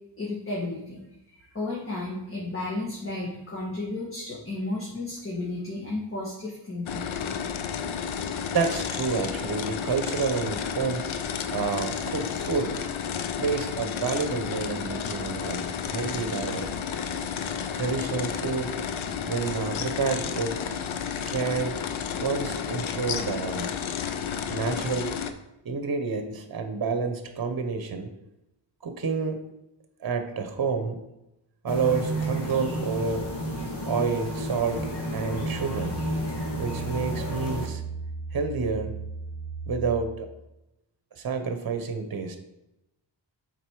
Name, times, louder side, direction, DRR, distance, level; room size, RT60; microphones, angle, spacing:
voice 1, 0.2-1.0 1.3-7.0, left 2 dB, 25° left, -5 dB, 1.8 m, -33 dB
sound 1, 6.9-25.3, left 7 dB, 85° left, 0.7 m, -32 dB
voice 2, 8.5-11.1 11.5-12.7 13.4-16.7 17.7-18.8 19.3-20.6 21.3-21.8 22.2-23.7 24.5-25.2 25.6-28.1 28.8-29.4 30.0-31.0 31.6-33.3 33.8-34.9 35.1-36.0 36.6-37.8 38.3-39.0 39.7-40.3 41.2-42.4, right 5 dB, 50° right, 6 dB, 1.0 m, -29 dB
sound 2, 31.7-37.7, equal, 60° left, 2.1 m, -31 dB
sound 3, 33.0-40.5, right 4 dB, 75° right, 0.7 m, -38 dB
7.9 x 4.2 x 4.7 m, 0.92 s
wide cardioid pair, 105°, 47 cm